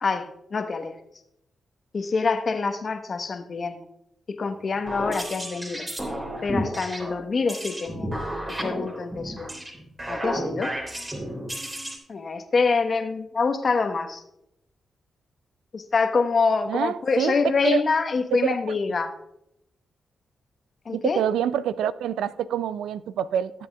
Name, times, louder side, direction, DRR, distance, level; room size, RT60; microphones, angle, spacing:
voice 1, 0.0-0.9 1.9-3.8 4.3-5.9 6.4-8.1 8.6-9.5 10.1-10.7 12.1-14.2 15.7-19.1 20.8-21.2, left 4 dB, 55° left, 7 dB, 1.1 m, -25 dB
sound 1, 4.7-12.0, equal, 25° right, 3.2 m, -32 dB
voice 2, 16.7-17.3 17.6-17.8 18.3-18.6 18.9-19.0 20.9-23.5, right 10 dB, 80° right, 16 dB, 0.3 m, -26 dB
16.5 x 7.8 x 2.3 m, 0.80 s
hypercardioid pair, 40°, 0 cm